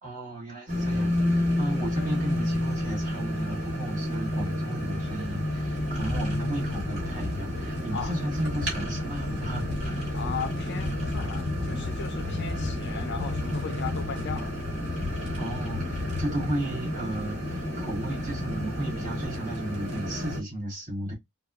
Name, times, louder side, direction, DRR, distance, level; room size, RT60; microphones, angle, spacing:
voice 1, 0.0-10.2 15.4-21.1, right 1 dB, 40° right, 1.8 m, -34 dB
sound 1, 0.7-20.4, left 1 dB, 55° right, 2.0 m, -30 dB
voice 2, 10.1-14.5, left 6 dB, 55° left, 0.4 m, -37 dB
4.4 x 2.2 x 2.4 m
head